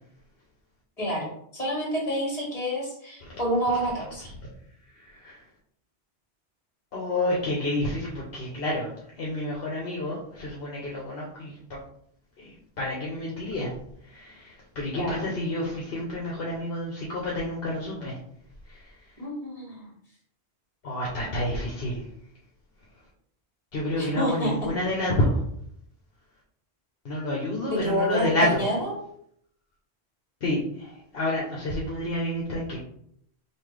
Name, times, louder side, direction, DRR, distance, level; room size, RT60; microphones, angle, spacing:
voice 1, 1.0-4.3 14.9-15.3 19.2-19.9 24.0-24.5 27.7-28.9, equal, 35° left, -3 dB, 1.8 m, -28 dB
voice 2, 4.9-5.4 6.9-11.8 12.4-13.7 14.0-18.2 18.7-18.9 20.8-22.1 23.7-25.4 27.0-28.7 30.4-32.8, left 1 dB, 65° left, -3 dB, 1.1 m, -29 dB
5.6 x 2.5 x 3.3 m, 0.68 s
omnidirectional pair, 1.1 m